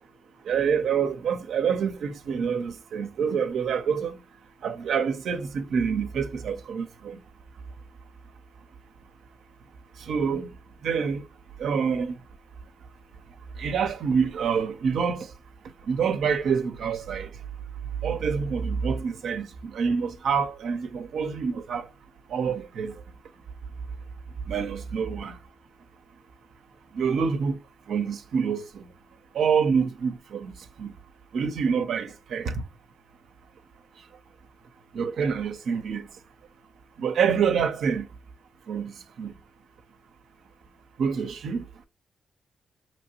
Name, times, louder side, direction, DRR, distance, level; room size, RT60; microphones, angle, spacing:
voice 1, 0.4-4.2 4.6-7.2 10.1-10.5 10.8-11.2 11.6-12.2 13.6-15.3 15.9-17.3 18.0-21.9 22.3-23.0 24.5-25.4 26.9-27.6 27.9-28.9 29.3-30.5 30.8-30.9 31.3-32.6 34.9-36.1 37.0-38.0 38.7-38.9 39.2-39.3 41.0-41.6, right 6 dB, 75° right, 0.5 m, -26 dB
5.2 x 3.0 x 2.8 m
supercardioid pair, 55°, 0 cm